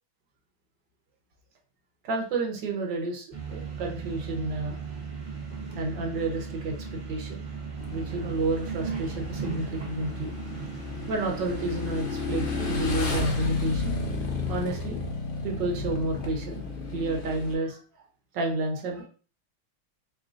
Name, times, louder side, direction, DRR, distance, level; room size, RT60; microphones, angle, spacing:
voice 1, 2.0-4.8 5.7-6.7 7.1-7.4 7.9-10.3 11.1-13.9 14.5-15.0 15.4-16.6 16.9-17.8 18.3-19.1, right 2 dB, 65° right, 0 dB, 1.5 m, -30 dB
sound 1, 3.3-12.8, right 5 dB, 45° right, 0.5 m, -37 dB
Motorcycle / Engine, 7.8-17.5, left 4 dB, 60° left, 0.5 m, -32 dB
3.7 x 3.6 x 2.5 m, 0.38 s
omnidirectional pair, 2.2 m